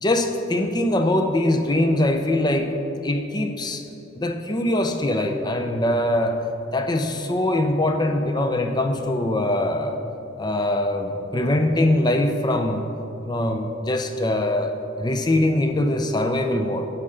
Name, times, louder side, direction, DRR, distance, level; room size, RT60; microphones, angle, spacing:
voice 1, 0.0-2.7 3.0-3.8 4.1-6.4 6.7-10.0 10.4-12.8 13.2-16.9, left 1 dB, 20° left, 5 dB, 0.5 m, -22 dB
9.9 x 3.7 x 6.5 m, 2.9 s
head